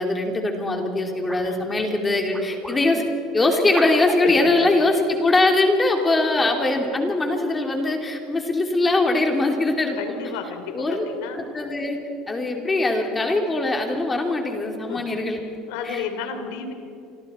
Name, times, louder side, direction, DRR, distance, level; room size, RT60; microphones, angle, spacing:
voice 1, 0.0-3.0 3.3-10.0 10.7-11.0 11.3-12.0 12.3-15.4 15.8-16.0, left 2 dB, 15° left, 2 dB, 2.7 m, -22 dB
sound 1, 1.3-1.5 2.3-2.8 3.7-4.2 5.3-5.5 6.2-6.4, right 1 dB, 5° right, 2.0 m, -36 dB
voice 2, 9.9-11.4 14.9-15.2 15.7-16.7, left 7 dB, 85° left, 6 dB, 3.3 m, -32 dB
28.5 x 25.5 x 4.3 m, 2.7 s
cardioid pair, 155°, 0 cm